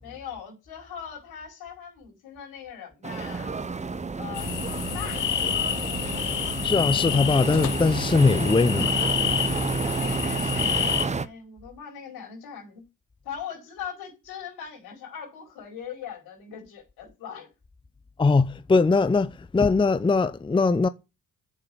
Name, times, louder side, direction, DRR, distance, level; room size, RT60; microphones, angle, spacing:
voice 1, 0.0-3.5 4.2-5.4 9.8-10.8 11.1-12.8 13.2-17.5, left 8 dB, 75° left, 4.7 m, -40 dB
sound 1, 3.0-11.3, right 4 dB, 20° right, 0.8 m, -30 dB
sound 2, 4.3-11.1, left 10 dB, 55° left, 1.0 m, -28 dB
voice 2, 6.6-9.3 18.2-20.9, left 4 dB, 15° left, 0.6 m, -21 dB
8.3 x 6.8 x 7.0 m
hypercardioid pair, 50°, 37 cm